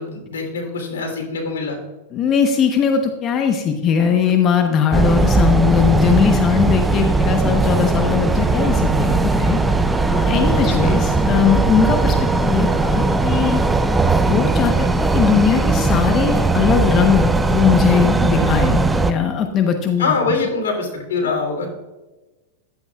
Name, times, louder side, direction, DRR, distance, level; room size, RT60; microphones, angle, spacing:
voice 1, 0.0-1.8 10.5-11.0 18.3-18.6 20.0-21.7, left 4 dB, 85° left, 2 dB, 3.1 m, -24 dB
voice 2, 2.1-9.6 10.1-13.6 14.2-20.4, left 7 dB, 35° left, 5 dB, 1.0 m, -19 dB
sound 1, 4.9-19.1, right 3 dB, 10° right, 0.5 m, -18 dB
11.0 x 8.4 x 2.4 m, 1.1 s
hypercardioid pair, 120°, 0 cm